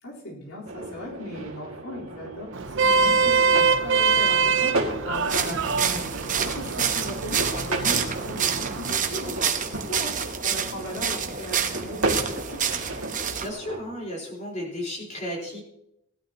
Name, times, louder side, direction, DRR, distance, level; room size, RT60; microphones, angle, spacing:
voice 1, 0.0-13.0, left 1 dB, 70° left, -5 dB, 4.1 m, -38 dB
sound 1, 0.6-13.8, right 2 dB, 70° right, 2.2 m, -34 dB
Vehicle horn car horn honking, 2.5-8.9, right 5 dB, 55° right, 0.6 m, -24 dB
sound 2, 5.1-13.5, right 7 dB, 35° right, 1.0 m, -28 dB
voice 2, 13.4-15.6, left 1 dB, 30° left, -2 dB, 4.4 m, -34 dB
18.0 x 12.0 x 3.0 m, 0.80 s
head